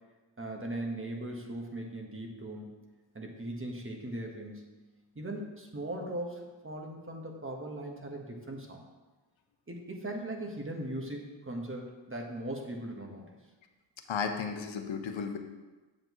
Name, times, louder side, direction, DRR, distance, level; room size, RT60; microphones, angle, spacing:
voice 1, 0.4-2.7 3.1-4.7 5.1-8.8 9.7-13.2, right 1 dB, 25° right, 1 dB, 1.3 m, -39 dB
voice 2, 14.1-15.4, left 6 dB, 85° left, 5 dB, 0.8 m, -34 dB
7.7 x 7.6 x 3.1 m, 1.2 s
wide cardioid pair, 90°, 45 cm